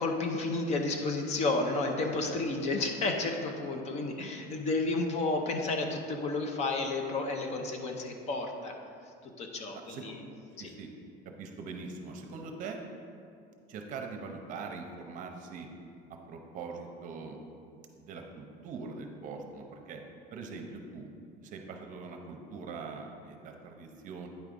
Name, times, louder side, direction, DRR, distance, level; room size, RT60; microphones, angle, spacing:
voice 1, 0.0-8.7 9.4-10.2 10.6-10.7, left 3 dB, 35° left, 3 dB, 0.7 m, -31 dB
voice 2, 10.6-10.9 11.2-12.8 13.7-15.7 16.1-17.4 18.0-20.0 20.3-21.1 21.4-24.3, right 4 dB, 45° right, 3 dB, 0.7 m, -42 dB
9.2 x 3.6 x 5.2 m, 2.4 s
cardioid pair, 155°, 19 cm